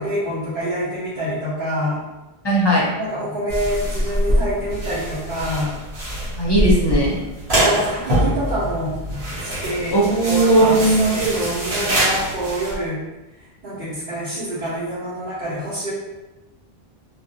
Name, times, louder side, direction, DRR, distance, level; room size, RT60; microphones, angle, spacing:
voice 1, 0.0-2.0 3.0-5.8 7.5-9.0 9.4-10.0 10.3-13.0 13.6-15.9, equal, 60° right, -13 dB, 1.0 m, -26 dB
voice 2, 2.4-2.9 6.3-7.2 9.9-11.2, right 1 dB, 30° left, -6 dB, 0.5 m, -17 dB
sound 1, 3.5-12.7, equal, 80° right, 1.2 m, -24 dB
2.4 x 2.1 x 2.7 m, 1.1 s
omnidirectional pair, 1.0 m